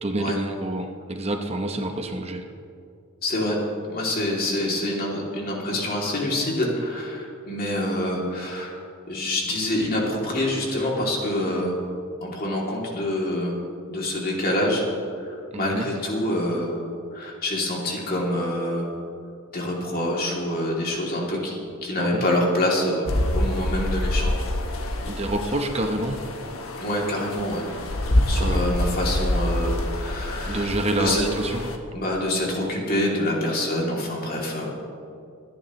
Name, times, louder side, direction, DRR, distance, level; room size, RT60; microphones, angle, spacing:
voice 1, 0.0-2.5 15.5-15.9 22.0-22.2 25.0-26.2 28.4-28.7 30.5-31.6, right 1 dB, 30° right, 5 dB, 0.9 m, -27 dB
voice 2, 3.2-3.6 3.9-8.8 9.1-11.8 12.2-13.5 13.9-14.9 15.2-16.7 17.1-18.9 19.5-24.4 26.8-27.6 28.0-30.7 31.0-31.3 31.9-34.7, left 1 dB, 45° left, -3 dB, 2.8 m, -26 dB
sound 1, 23.1-31.8, left 1 dB, 70° left, 1.3 m, -26 dB
25.5 x 10.5 x 3.1 m, 2.4 s
head